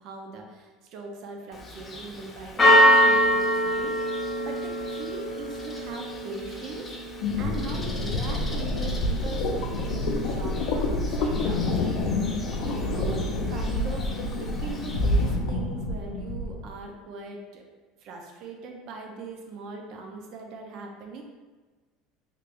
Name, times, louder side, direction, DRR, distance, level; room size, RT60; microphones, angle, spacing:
voice 1, 0.0-6.9 7.4-12.1 12.6-17.6 18.0-21.2, right 3 dB, 55° right, 2 dB, 0.6 m, -40 dB
Church bell, 1.5-15.3, equal, 20° left, 0.6 m, -27 dB
sound 1, 7.2-16.6, left 2 dB, 70° left, 0.4 m, -27 dB
3.2 x 2.4 x 3.4 m, 1.3 s
supercardioid pair, 130°, 0 cm